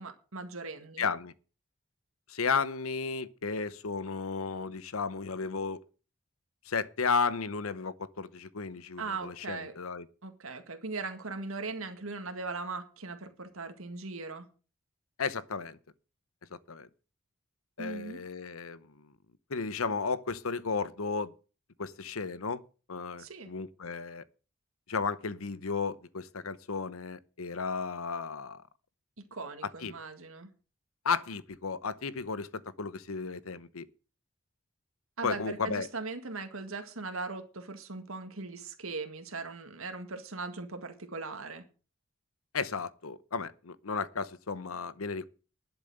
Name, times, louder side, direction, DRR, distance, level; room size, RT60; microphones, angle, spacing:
voice 1, 0.0-1.0 9.0-9.7 10.2-14.5 17.8-18.2 23.2-23.5 29.3-30.5 35.2-41.6, right 3 dB, 85° right, 1.9 m, -39 dB
voice 2, 1.0-1.3 2.3-5.8 6.6-10.1 15.2-15.8 16.5-16.9 17.8-19.1 19.5-21.3 21.8-22.6 22.9-24.2 24.9-28.6 29.8-29.9 31.0-33.8 35.2-35.9 42.5-45.3, left 5 dB, 90° left, 0.9 m, -34 dB
12.0 x 7.2 x 7.8 m
head